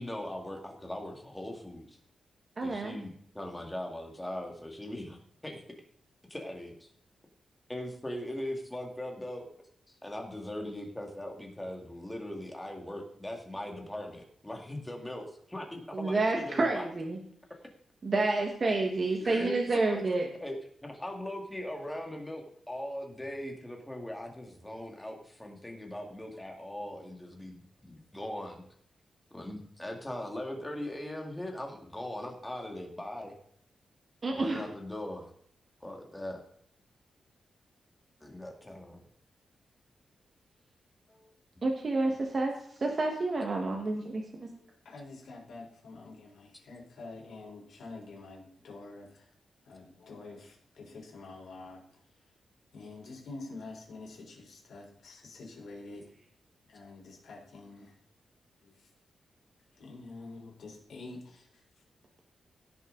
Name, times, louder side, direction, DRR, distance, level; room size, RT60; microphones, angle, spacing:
voice 1, 0.0-2.0 2.6-5.2 5.4-5.6 6.3-6.9 7.7-9.5 9.9-16.8 19.2-20.0 20.4-20.6 20.8-28.6 29.3-33.3 34.3-35.3 35.8-36.4 38.2-39.0 41.1-41.3 50.1-50.2, left 1 dB, 10° left, 2 dB, 1.9 m, -40 dB
voice 2, 2.6-3.0 15.9-17.2 18.0-20.3 34.2-34.6 41.6-42.5 42.8-44.5, right 2 dB, 35° right, 1 dB, 1.5 m, -29 dB
voice 3, 44.8-49.2 49.6-51.8 52.7-56.1 56.7-57.9 58.6-58.7 59.8-61.5, left 3 dB, 70° left, -1 dB, 4.2 m, -47 dB
16.5 x 6.9 x 3.9 m, 0.65 s
wide cardioid pair, 135°, 0 cm